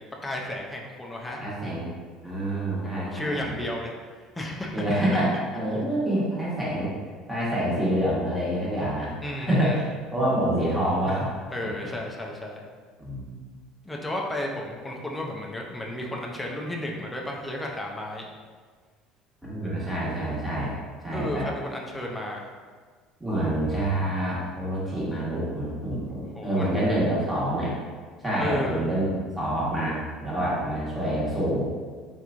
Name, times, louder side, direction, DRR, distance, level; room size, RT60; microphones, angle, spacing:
voice 1, 0.0-1.4 2.8-3.9 4.4-4.9 5.7-5.8 9.2-9.8 11.5-12.6 13.8-18.3 21.1-22.5 26.3-26.8 28.4-29.0, left 1 dB, 5° left, -1 dB, 0.5 m, -33 dB
voice 2, 1.4-1.9 2.2-3.6 4.7-6.9 7.3-9.1 9.4-9.9 10.1-11.3 13.0-13.4 19.4-20.8 21.0-21.5 23.2-27.8 28.2-31.7, right 1 dB, 10° right, -7 dB, 1.2 m, -27 dB
3.4 x 2.9 x 2.5 m, 1.5 s
supercardioid pair, 115°, 0 cm